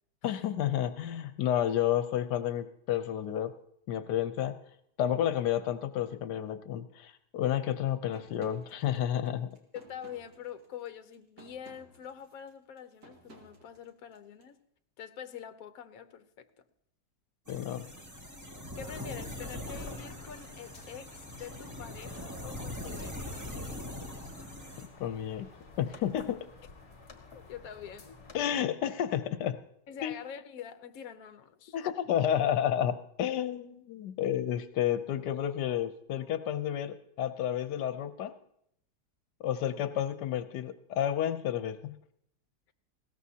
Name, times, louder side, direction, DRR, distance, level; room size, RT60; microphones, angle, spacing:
voice 1, 0.2-3.5 3.9-4.6 5.0-9.5 17.5-17.9 25.0-25.5 25.8-26.4 28.3-29.6 30.0-30.1 31.7-38.3 39.4-42.0, left 10 dB, 80° left, 1.3 m, -31 dB
sound 1, 8.1-14.5, right 2 dB, 65° right, 2.5 m, -57 dB
voice 2, 9.7-14.6 15.0-16.5 18.8-23.3 27.3-28.2 29.9-31.8, left 8 dB, 60° left, 1.2 m, -45 dB
sound 2, 17.5-24.9, left 1 dB, 10° right, 2.0 m, -42 dB
sound 3, 19.7-28.4, left 3 dB, 40° left, 1.9 m, -53 dB
20.0 x 17.0 x 2.8 m
omnidirectional pair, 1.8 m